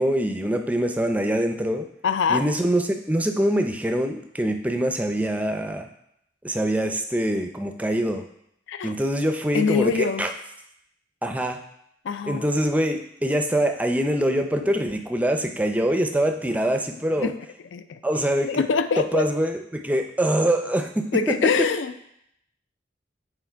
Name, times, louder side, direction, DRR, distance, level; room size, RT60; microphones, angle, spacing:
voice 1, 0.0-1.9 2.3-5.9 6.4-8.2 8.8-10.3 11.2-11.6 12.3-17.3 18.0-18.7 19.0-21.7, right 1 dB, 10° right, 5 dB, 0.4 m, -24 dB
voice 2, 2.0-2.4 8.7-8.9 9.5-10.3 12.0-12.4 17.2-17.4 17.7-18.0 18.5-19.3 21.1-21.9, left 5 dB, 85° left, 11 dB, 0.4 m, -23 dB
7.1 x 3.5 x 4.5 m, 0.75 s
head